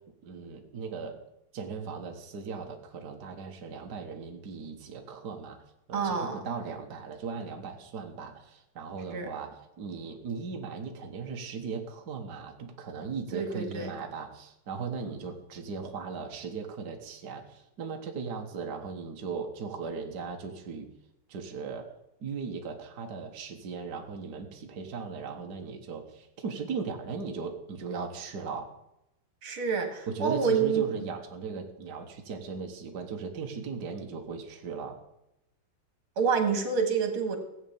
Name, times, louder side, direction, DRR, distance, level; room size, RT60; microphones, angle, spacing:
voice 1, 0.2-1.2 1.5-20.9 21.3-21.9 22.2-28.7 30.1-35.0, right 5 dB, 50° right, 3 dB, 1.8 m, -38 dB
voice 2, 5.9-6.4 9.1-9.3 13.3-13.9 29.4-31.1 36.2-37.4, right 5 dB, 75° right, 5 dB, 2.8 m, -28 dB
16.5 x 8.3 x 7.2 m, 0.88 s
omnidirectional pair, 2.4 m